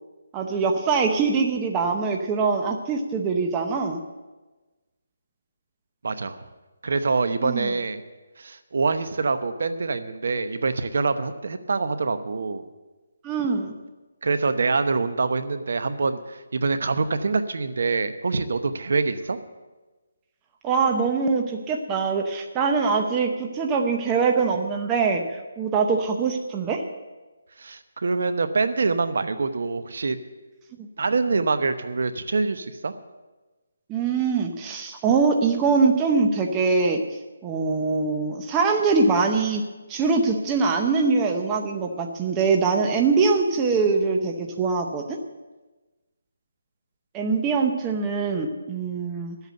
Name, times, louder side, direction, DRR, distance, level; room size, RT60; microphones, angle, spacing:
voice 1, 0.3-4.0 7.4-7.7 13.2-13.7 20.6-26.8 30.8-30.9 33.9-37.0 37.4-39.6 39.9-45.2 47.1-49.4, right 4 dB, 15° right, 3 dB, 0.8 m, -23 dB
voice 2, 6.0-6.4 6.8-8.0 8.4-12.6 14.2-19.4 27.6-30.2 31.0-32.9, right 4 dB, 65° right, 10 dB, 0.9 m, -25 dB
12.0 x 8.2 x 7.7 m, 1.2 s
hypercardioid pair, 170°, 0 cm